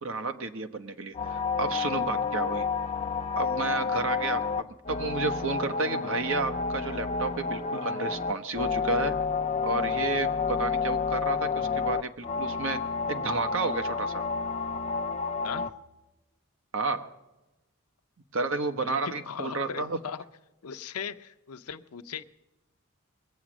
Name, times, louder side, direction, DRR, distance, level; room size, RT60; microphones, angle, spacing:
voice 1, 0.0-2.7 3.4-9.2 9.6-12.8 13.1-14.2 16.7-17.1 18.3-20.0, right 3 dB, 60° right, 8 dB, 1.0 m, -31 dB
sound 1, 1.1-15.7, left 5 dB, 30° left, 0.5 m, -30 dB
voice 2, 18.8-20.2 20.6-22.2, left 7 dB, 85° left, 11 dB, 0.6 m, -38 dB
21.5 x 7.9 x 6.1 m, 1.0 s
head